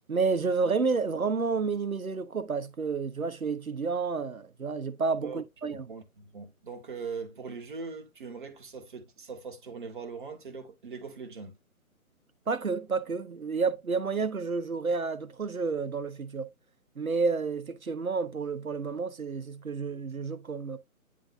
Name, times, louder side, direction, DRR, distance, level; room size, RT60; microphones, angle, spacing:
voice 1, 0.1-5.9 12.5-16.5 17.0-20.8, right 4 dB, 70° right, 1.1 m, -30 dB
voice 2, 5.9-11.5, right 5 dB, 35° right, 1.4 m, -41 dB
9.9 x 3.7 x 2.6 m
figure-of-eight pair, 145°, 44 cm